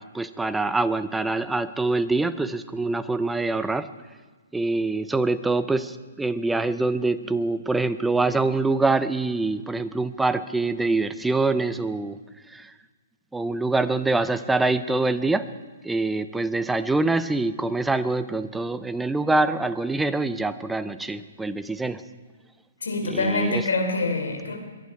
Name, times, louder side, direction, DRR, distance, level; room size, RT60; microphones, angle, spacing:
voice 1, 0.0-3.9 4.5-12.2 12.5-12.7 13.3-15.5 15.8-22.0 23.1-23.6, right 3 dB, 5° right, 12 dB, 0.6 m, -25 dB
voice 2, 22.8-24.6, left 2 dB, 70° left, 4 dB, 3.2 m, -25 dB
22.0 x 11.5 x 4.7 m, 1.4 s
figure-of-eight pair, 125°, 0 cm